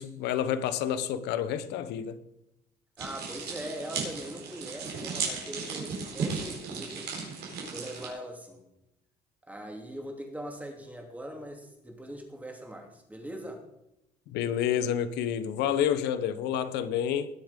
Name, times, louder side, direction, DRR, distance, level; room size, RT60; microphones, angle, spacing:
voice 1, 0.0-2.2 14.3-17.3, left 9 dB, 90° left, 0.9 m, -29 dB
voice 2, 3.0-7.1 7.6-8.6 9.5-13.6, equal, 10° right, 2.7 m, -41 dB
sound 1, 3.0-8.1, right 5 dB, 75° right, 4.5 m, -35 dB
19.5 x 7.2 x 5.2 m
cardioid pair, 110°, 17 cm